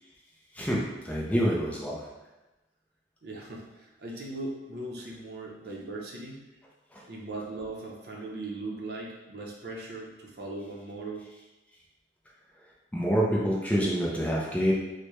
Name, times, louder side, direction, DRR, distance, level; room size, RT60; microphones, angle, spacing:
voice 1, 0.5-2.0 6.9-7.0 12.9-14.7, equal, 10° left, -4 dB, 0.5 m, -27 dB
voice 2, 3.2-6.4 7.1-11.3, right 2 dB, 55° right, -1 dB, 0.6 m, -39 dB
4.5 x 2.1 x 3.1 m, 1.0 s
head